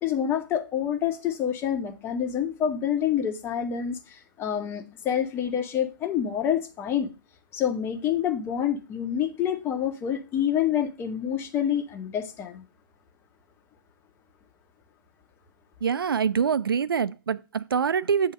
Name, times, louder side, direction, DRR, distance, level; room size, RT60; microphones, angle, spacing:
voice 1, 0.0-7.1 7.5-12.7, left 9 dB, 20° left, 0.8 m, -27 dB
voice 2, 15.8-18.3, right 6 dB, 75° right, 0.4 m, -25 dB
8.0 x 2.8 x 6.1 m
figure-of-eight pair, 120°, 12 cm